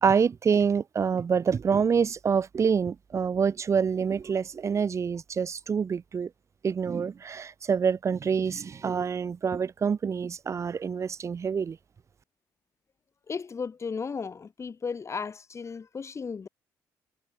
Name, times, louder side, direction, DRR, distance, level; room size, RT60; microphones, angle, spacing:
voice 1, 0.0-6.3 6.6-11.8, right 6 dB, 35° right, 0.4 m, -26 dB
voice 2, 13.3-16.5, left 5 dB, 35° left, 0.7 m, -35 dB
supercardioid pair, 60°, 9 cm